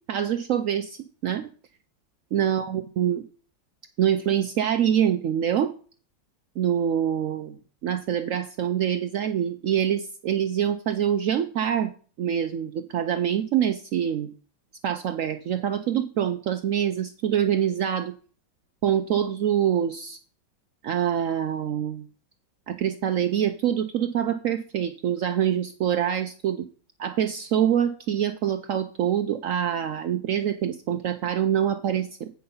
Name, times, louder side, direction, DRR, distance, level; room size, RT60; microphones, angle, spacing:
voice 1, 0.1-1.5 2.3-3.2 4.0-5.7 6.6-11.9 12.2-14.3 14.8-18.1 18.8-20.2 20.8-22.1 22.7-26.7 27.0-32.3, right 9 dB, 85° right, 8 dB, 0.7 m, -25 dB
8.6 x 5.7 x 5.4 m, 0.41 s
omnidirectional pair, 2.0 m